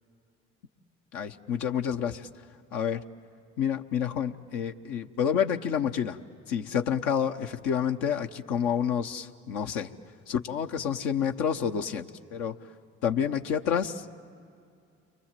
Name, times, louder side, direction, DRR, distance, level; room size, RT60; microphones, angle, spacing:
voice 1, 1.1-2.3 2.7-3.0 3.6-6.2 6.5-9.9 10.3-12.5 13.0-14.1, left 8 dB, 80° left, 4 dB, 0.9 m, -29 dB
29.5 x 24.0 x 7.5 m, 2.4 s
supercardioid pair, 65°, 31 cm